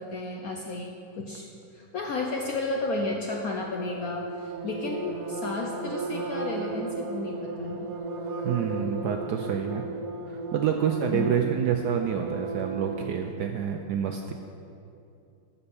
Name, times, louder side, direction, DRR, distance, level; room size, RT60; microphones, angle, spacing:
voice 1, 0.0-1.5 1.7-7.9 11.1-11.4, left 3 dB, 70° left, 1 dB, 0.9 m, -33 dB
sound 1, 3.6-13.2, right 3 dB, 90° right, 1.8 m, -35 dB
voice 2, 8.4-9.8 10.3-14.3, right 8 dB, 75° right, 4 dB, 0.9 m, -28 dB
12.5 x 5.6 x 7.0 m, 2.6 s
omnidirectional pair, 2.3 m